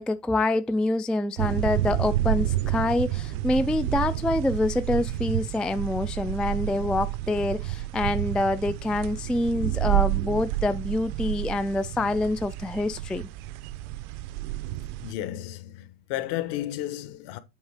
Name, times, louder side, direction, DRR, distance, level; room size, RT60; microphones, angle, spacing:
voice 1, 0.0-13.3, left 2 dB, ahead, 0.3 m, -26 dB
sound 1, 1.4-15.1, right 15 dB, 65° right, 0.9 m, -30 dB
voice 2, 15.0-17.4, left 13 dB, 60° left, 1.5 m, -33 dB
8.2 x 3.5 x 4.9 m
supercardioid pair, 100°, 45 cm